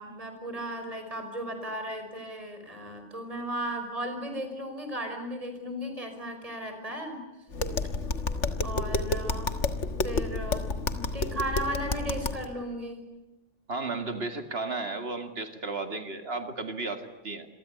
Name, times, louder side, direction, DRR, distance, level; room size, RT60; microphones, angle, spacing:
voice 1, 0.0-7.2 8.6-9.6 10.0-13.0, right 1 dB, 30° right, 6 dB, 5.5 m, -36 dB
Tap, 7.5-12.5, left 3 dB, 75° left, 1.9 m, -30 dB
voice 2, 13.7-17.5, right 3 dB, 55° right, 8 dB, 2.5 m, -34 dB
27.5 x 23.0 x 8.5 m, 1.0 s
omnidirectional pair, 1.2 m